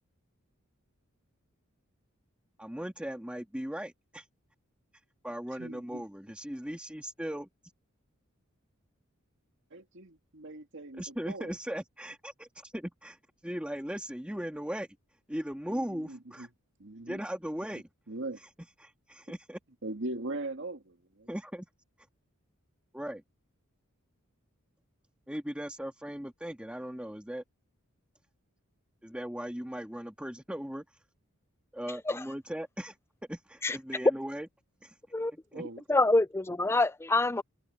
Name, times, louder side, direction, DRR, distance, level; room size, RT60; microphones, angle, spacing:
voice 1, 2.6-4.3 5.2-7.5 10.9-14.9 15.3-16.5 17.1-17.9 18.4-18.5 18.8-19.6 21.3-21.7 22.9-23.2 25.3-27.4 29.0-31.0 31.7-33.0 33.3-34.5 34.8-35.0 35.5-35.7, equal, 5° right, 1.9 m, -38 dB
voice 2, 5.6-6.0 9.7-11.5 15.7-16.5 16.8-17.2 18.1-18.4 19.8-21.3 35.5-35.8, right 2 dB, 60° right, 2.1 m, -40 dB
voice 3, 35.9-37.4, left 2 dB, 10° left, 0.5 m, -26 dB
head